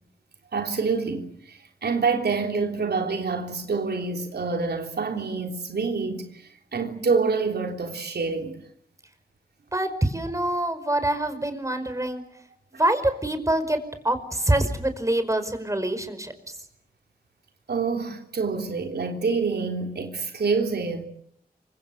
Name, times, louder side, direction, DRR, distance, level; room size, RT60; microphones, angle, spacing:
voice 1, 0.5-8.6 17.7-21.0, right 4 dB, 85° right, 3.5 m, -27 dB
voice 2, 9.7-12.2 12.8-13.8 14.0-16.6, right 1 dB, 20° right, 5.1 m, -25 dB
28.5 x 25.0 x 7.9 m
wide cardioid pair, 65°, 16 cm